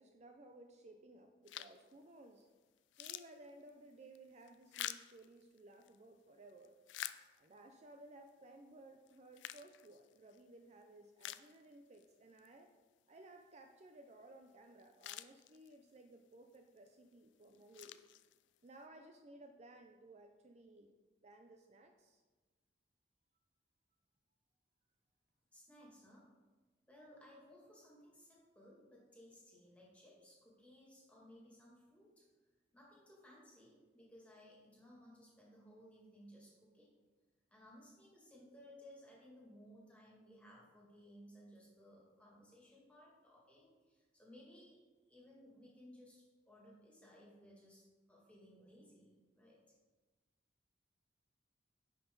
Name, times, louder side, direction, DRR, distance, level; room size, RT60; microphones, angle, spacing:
voice 1, 0.0-2.5 3.0-6.8 7.4-12.7 13.1-18.0 18.6-20.9 21.2-22.2, right 2 dB, 40° right, 4 dB, 0.5 m, -58 dB
sound 1, 1.5-1.9 2.4-2.5 2.8-6.0 6.5-7.7 8.3-8.4 9.1-10.4 10.8-10.9 11.2-12.0 12.4-12.5 14.5-14.6 14.8-15.9 16.5-16.9 17.4-18.7, left 12 dB, 90° left, 0.3 m, -49 dB
voice 2, 25.5-26.3 26.9-32.3 32.7-36.9 37.5-44.8 45.1-49.6, equal, 10° left, -4 dB, 2.2 m, -60 dB
9.9 x 5.7 x 3.9 m, 1.3 s
head